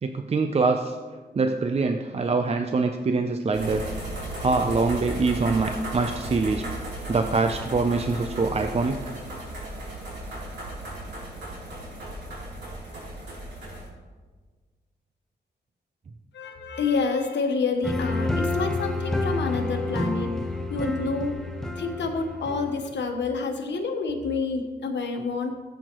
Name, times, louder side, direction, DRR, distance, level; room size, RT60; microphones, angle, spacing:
voice 1, 0.0-1.0 1.3-3.9 4.4-6.7 7.1-9.1, right 3 dB, 35° right, 6 dB, 0.5 m, -24 dB
sound 1, 3.5-13.9, right 1 dB, 70° right, 3.3 m, -35 dB
voice 2, 16.3-20.4 20.7-21.4 21.8-25.6, left 4 dB, 75° left, 4 dB, 1.2 m, -28 dB
sound 2, 17.8-23.0, left 2 dB, 5° left, 1.0 m, -29 dB
15.5 x 7.9 x 3.0 m, 1.4 s
wide cardioid pair, 105°, 18 cm